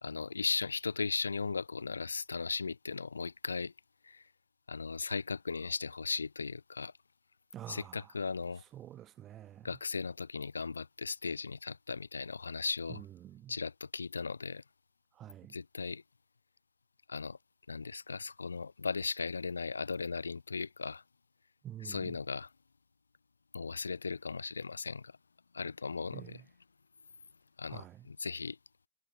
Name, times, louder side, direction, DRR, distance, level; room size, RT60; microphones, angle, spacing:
voice 1, 0.0-3.7 4.0-4.2 4.7-6.9 7.7-8.6 9.6-13.0 13.5-14.6 15.5-16.0 17.1-17.4 17.7-21.0 21.8-22.5 23.5-25.1 25.5-26.4 27.6-28.6, left 4 dB, 75° left, 1.8 m, -37 dB
voice 2, 7.5-8.1 8.7-9.7 12.9-13.5 15.1-15.6 21.6-22.2 26.1-26.4 27.7-28.1, right 12 dB, 30° right, 1.1 m, -48 dB
figure-of-eight pair, 90°, 0 cm